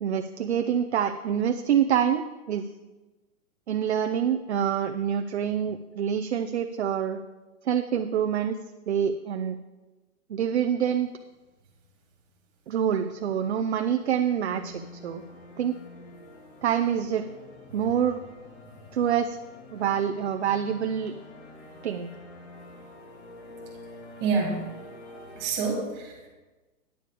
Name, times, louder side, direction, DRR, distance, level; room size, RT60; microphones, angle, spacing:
voice 1, 0.0-2.7 3.7-7.2 7.6-8.6 8.9-9.6 10.3-11.1 12.7-15.2 15.6-15.8 16.6-17.3 17.7-18.2 18.9-19.4 19.7-21.1 21.8-22.1, right 9 dB, 50° right, 7 dB, 0.5 m, -26 dB
sound 1, 14.5-25.5, left 2 dB, 50° left, 2.0 m, -47 dB
voice 2, 24.2-24.7 25.4-26.3, right 4 dB, 20° right, -2 dB, 2.2 m, -28 dB
9.9 x 8.4 x 4.9 m, 1.2 s
hypercardioid pair, 180°, 44 cm